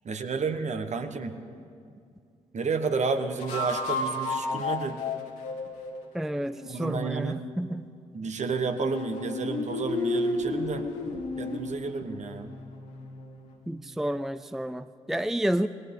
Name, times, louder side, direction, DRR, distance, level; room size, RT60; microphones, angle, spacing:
voice 1, 0.0-1.3 2.5-5.0 6.6-7.4 8.1-10.9 11.4-12.5, right 4 dB, 50° right, 8 dB, 1.2 m, -31 dB
sound 1, 1.1-1.2 3.4-6.8 8.8-13.6, left 2 dB, 85° left, 1.8 m, -32 dB
voice 2, 6.1-7.9 13.7-15.7, right 1 dB, ahead, 13 dB, 0.4 m, -30 dB
19.5 x 17.5 x 3.8 m, 2.4 s
hypercardioid pair, 45°, 15 cm